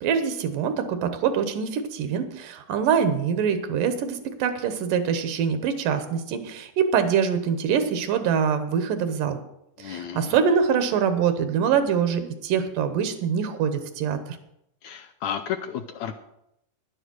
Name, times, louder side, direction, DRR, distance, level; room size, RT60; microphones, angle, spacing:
voice 1, 0.0-9.4 9.8-14.4, right 7 dB, 80° right, 9 dB, 2.7 m, -24 dB
voice 2, 9.8-10.4 14.8-16.1, left 9 dB, 80° left, 7 dB, 1.7 m, -32 dB
10.5 x 9.9 x 6.2 m, 0.80 s
omnidirectional pair, 3.8 m